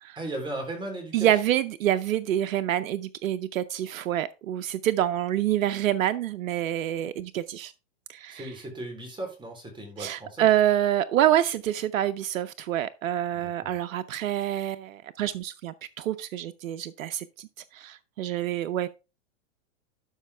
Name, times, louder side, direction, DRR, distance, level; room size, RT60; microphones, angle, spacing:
voice 1, 0.2-1.3 8.3-10.5 13.3-13.7, right 2 dB, 10° right, 3.5 m, -37 dB
voice 2, 1.1-7.7 8.1-8.5 10.0-17.5 17.7-18.9, right 12 dB, 90° right, 0.7 m, -27 dB
12.0 x 5.5 x 3.4 m
hypercardioid pair, 125°, 39 cm